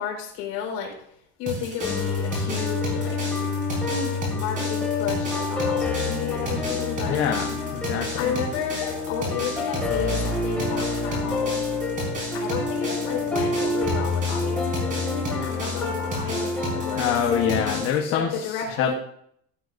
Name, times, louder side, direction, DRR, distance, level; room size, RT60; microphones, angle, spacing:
voice 1, 0.0-3.4 3.7-7.2 8.2-11.6 12.3-17.2 18.1-18.9, left 7 dB, 80° left, 0 dB, 4.6 m, -32 dB
sound 1, 1.5-18.0, right 2 dB, 25° right, 4.6 m, -34 dB
sound 2, 1.8-17.8, left 3 dB, 5° left, 2.3 m, -28 dB
voice 2, 7.1-8.3 16.9-18.3 18.7-18.9, left 8 dB, 45° left, 2 dB, 1.2 m, -25 dB
15.0 x 12.0 x 2.6 m, 0.70 s
cardioid pair, 180°, 30 cm